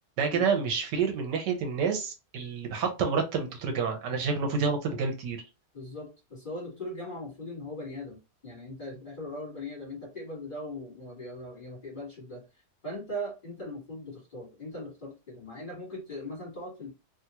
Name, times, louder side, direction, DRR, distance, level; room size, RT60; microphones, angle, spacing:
voice 1, 0.2-5.4, right 5 dB, 75° right, 3 dB, 1.3 m, -28 dB
voice 2, 5.7-12.4 12.8-16.9, left 1 dB, 30° left, -5 dB, 1.5 m, -39 dB
3.0 x 2.4 x 2.8 m, 0.28 s
omnidirectional pair, 1.9 m